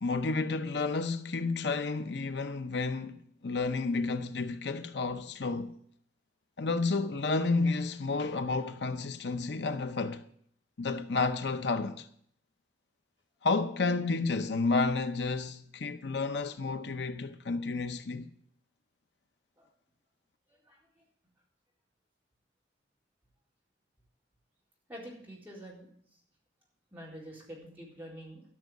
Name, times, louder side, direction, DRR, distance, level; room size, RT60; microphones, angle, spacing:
voice 1, 0.0-5.8 6.6-10.2 10.8-12.1 13.4-18.3, left 3 dB, 70° left, 0.7 m, -31 dB
voice 2, 20.5-21.0 24.9-25.9 26.9-28.4, equal, 10° right, 4.0 m, -47 dB
13.0 x 6.3 x 9.5 m
head